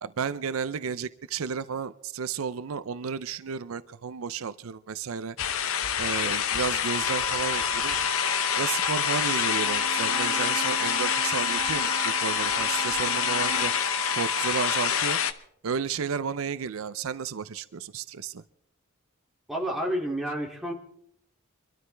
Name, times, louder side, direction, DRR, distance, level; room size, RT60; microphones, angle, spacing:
voice 1, 0.0-5.4 6.0-8.0 8.6-13.7 14.1-15.2 15.6-18.4, right 6 dB, 80° right, 14 dB, 0.5 m, -32 dB
sound 1, 5.4-15.3, left 8 dB, 75° left, 0.8 m, -27 dB
sound 2, 6.8-14.9, right 2 dB, 30° left, 5.5 m, -36 dB
Bowed string instrument, 9.5-13.9, right 5 dB, 35° right, 0.8 m, -40 dB
voice 2, 19.5-20.7, right 1 dB, ahead, -2 dB, 2.6 m, -29 dB
24.5 x 13.0 x 3.4 m, 0.69 s
head